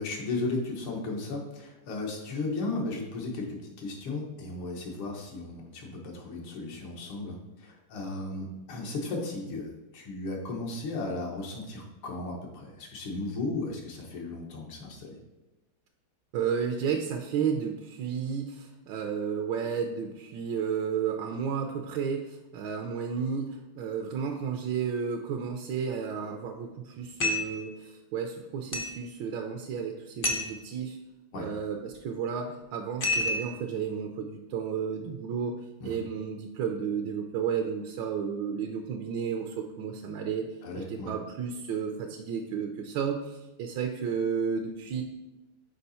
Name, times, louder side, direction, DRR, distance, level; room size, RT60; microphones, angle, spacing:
voice 1, 0.0-15.1 31.3-31.5 35.8-36.0 40.6-41.1, left 2 dB, 90° left, 0 dB, 2.1 m, -35 dB
voice 2, 16.3-31.0 31.3-40.5 40.8-45.0, right 7 dB, 75° right, 3 dB, 1.2 m, -32 dB
sound 1, 27.2-27.6 28.7-29.0 30.2-30.6 33.0-33.6, left 2 dB, 65° left, 0.5 m, -29 dB
6.6 x 4.8 x 4.1 m, 1.0 s
omnidirectional pair, 2.3 m